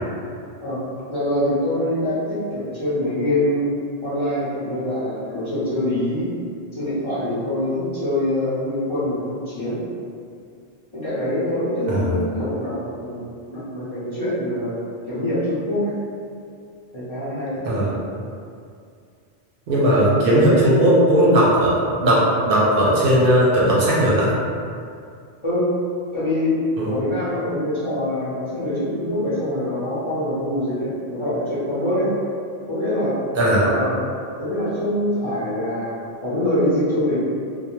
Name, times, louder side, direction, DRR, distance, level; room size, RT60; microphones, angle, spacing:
voice 1, 1.1-3.6 4.0-6.3 6.7-9.8 10.9-14.8 15.1-15.9 16.9-17.6 25.4-25.6 26.1-26.5 26.9-32.1 32.7-33.2 33.6-33.9 34.4-37.2, left 1 dB, 35° left, -13 dB, 0.6 m, -24 dB
voice 2, 19.7-21.7 22.0-24.3 26.8-27.0 33.3-33.7, right 1 dB, 65° right, -6 dB, 0.7 m, -17 dB
2.2 x 2.1 x 2.9 m, 2.3 s
omnidirectional pair, 1.1 m